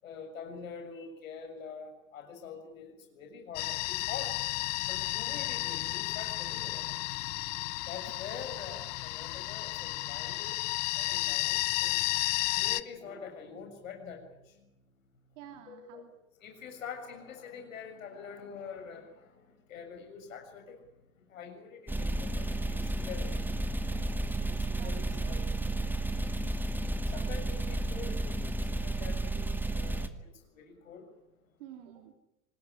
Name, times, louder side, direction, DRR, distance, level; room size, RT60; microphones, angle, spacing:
voice 1, 0.0-4.3 4.9-7.1 7.9-10.6 10.9-14.7 15.7-16.0 16.4-23.9 24.5-25.5 26.7-31.1, left 6 dB, 75° left, 4 dB, 7.0 m, -46 dB
sound 1, 3.5-12.8, left 21 dB, 45° left, 1.0 m, -33 dB
voice 2, 15.4-16.1 23.9-24.5 24.8-25.0 25.2-25.3 27.1-27.3 31.6-32.1, right 11 dB, 65° right, 5 dB, 3.1 m, -51 dB
sound 2, 21.9-30.1, right 2 dB, 5° right, 2.1 m, -32 dB
26.5 x 20.5 x 9.9 m, 0.89 s
hypercardioid pair, 90°, 40 cm